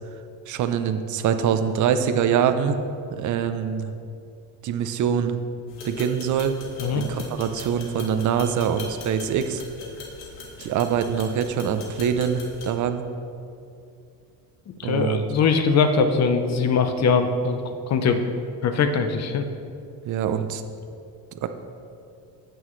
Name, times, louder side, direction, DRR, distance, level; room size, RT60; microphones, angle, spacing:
voice 1, 0.5-2.8 3.1-3.9 4.6-5.4 5.8-6.6 6.9-9.6 10.6-13.1 14.8-15.2 20.0-20.6 21.4-21.5, right 8 dB, 45° right, 9 dB, 0.7 m, -24 dB
sound 1, 5.7-12.7, left 3 dB, 80° left, 2.0 m, -40 dB
voice 2, 14.8-17.6 17.9-18.3 18.6-19.5, left 5 dB, 40° left, 7 dB, 0.8 m, -21 dB
16.0 x 6.2 x 3.2 m, 2.5 s
cardioid pair, 125°, 43 cm